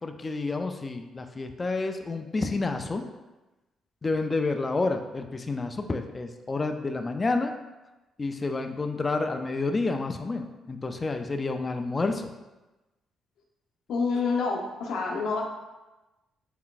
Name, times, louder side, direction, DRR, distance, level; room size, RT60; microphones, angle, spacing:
voice 1, 0.0-3.1 4.0-7.5 8.2-12.3, left 3 dB, 25° left, 6 dB, 0.4 m, -29 dB
voice 2, 13.9-15.4, left 4 dB, 80° left, 0 dB, 0.7 m, -27 dB
4.4 x 3.8 x 2.4 m, 1.1 s
cardioid pair, 90°, 0 cm